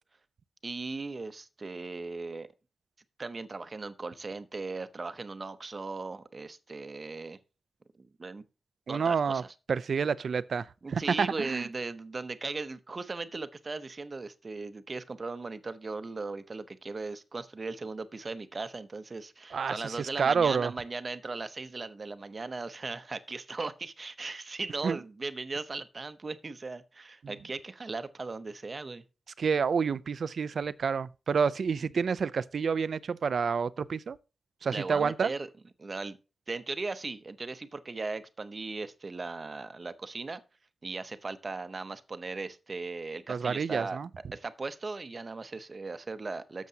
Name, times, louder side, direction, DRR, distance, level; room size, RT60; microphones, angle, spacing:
voice 1, 0.6-2.5 3.2-7.4 8.0-8.4 8.9-9.5 10.8-29.0 34.7-35.5 35.8-36.2 36.5-40.4 40.8-44.0 44.3-46.7, right 3 dB, 35° right, 0.7 m, -38 dB
voice 2, 8.9-9.4 9.7-10.6 10.9-11.7 19.5-20.7 24.8-25.0 29.4-34.2 34.6-35.3 43.3-44.1, right 6 dB, 65° right, 0.4 m, -28 dB
12.0 x 7.2 x 2.8 m
wide cardioid pair, 155°, 0 cm